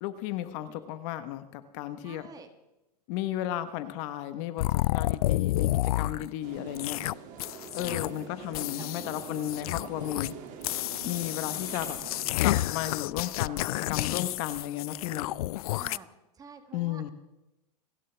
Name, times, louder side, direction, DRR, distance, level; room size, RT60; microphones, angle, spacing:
voice 1, 0.0-2.3 3.1-7.0 7.7-10.3 11.0-12.0 12.4-15.3 16.7-17.1, left 12 dB, 45° left, 11 dB, 1.2 m, -34 dB
voice 2, 0.7-1.0 2.0-2.5 7.7-8.1 8.8-8.9 15.7-16.1 16.4-17.1, right 5 dB, 15° right, 8 dB, 1.4 m, -48 dB
sound 1, 4.6-6.3 6.7-7.1 7.4-8.2 8.5-10.3 10.6-16.0, left 16 dB, 65° left, 0.4 m, -30 dB
sound 2, 6.4-12.3, right 7 dB, 40° right, 2.4 m, -45 dB
28.5 x 11.0 x 3.4 m, 0.97 s
supercardioid pair, 140°, 21 cm